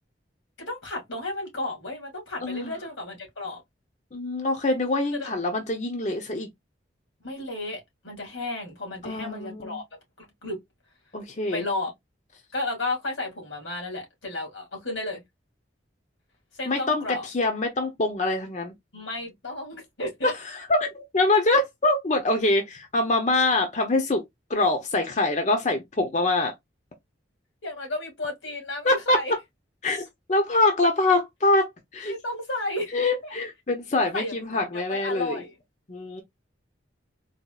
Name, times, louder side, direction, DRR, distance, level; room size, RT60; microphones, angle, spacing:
voice 1, 0.6-3.6 5.1-5.3 7.2-9.8 10.2-10.6 11.5-11.9 12.5-15.2 16.5-17.3 18.9-20.3 27.6-29.3 32.1-33.0 33.2-33.3 34.0-35.6, left 2 dB, 90° left, 2.2 m, -33 dB
voice 2, 2.4-2.7 4.1-6.5 9.0-9.8 11.1-11.6 16.7-18.7 20.2-20.3 20.7-24.2 24.5-26.5 28.8-29.2 29.8-30.0 30.3-32.1 32.9-35.4 35.9-36.2, left 2 dB, 40° left, 0.6 m, -24 dB
4.1 x 2.4 x 2.3 m
head